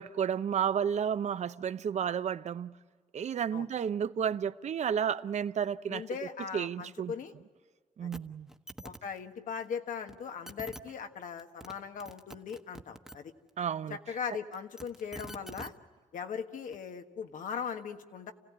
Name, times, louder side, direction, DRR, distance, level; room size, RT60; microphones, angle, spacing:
voice 1, 0.0-2.7 3.1-6.0 6.5-7.1 8.0-8.5 13.6-14.0, right 8 dB, 60° right, 0.7 m, -32 dB
voice 2, 5.9-7.3 8.0-8.1 8.8-13.3 13.9-15.7 16.1-18.3, left 6 dB, 85° left, 1.5 m, -39 dB
sound 1, 8.1-8.2 8.5-9.0 10.1-10.2 10.5-10.8 11.4-11.7 12.0-13.2 14.5-15.7 16.7-16.8, right 1 dB, 5° right, 1.1 m, -45 dB
28.5 x 16.5 x 9.6 m
cardioid pair, 110°, 13 cm